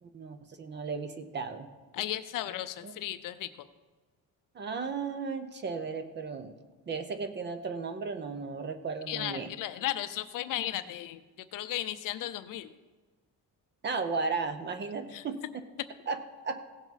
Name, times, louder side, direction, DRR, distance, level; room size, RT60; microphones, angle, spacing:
voice 1, 0.0-1.7 2.8-2.9 4.5-6.5 6.9-9.5 13.8-15.4 16.1-16.6, right 4 dB, 30° right, 9 dB, 0.6 m, -35 dB
voice 2, 1.9-3.5 9.1-11.2 11.5-12.7 15.1-15.2, left 13 dB, 55° left, 11 dB, 0.6 m, -35 dB
16.5 x 7.0 x 4.1 m, 1.3 s
cardioid pair, 180°, 38 cm